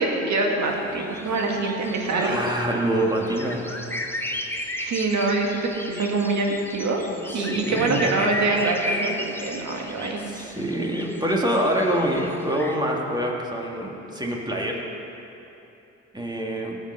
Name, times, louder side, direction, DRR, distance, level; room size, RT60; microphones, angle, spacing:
voice 1, 0.0-2.4 4.8-7.1 7.3-10.3, right 3 dB, 70° right, 1 dB, 1.9 m, -25 dB
sound 1, 0.7-12.7, left 1 dB, 5° left, 0.9 m, -34 dB
voice 2, 2.2-3.6 7.1-8.1 10.2-14.8 16.1-16.8, right 1 dB, 15° right, -1 dB, 2.0 m, -26 dB
17.0 x 6.6 x 5.4 m, 2.9 s
cardioid pair, 90°, 30 cm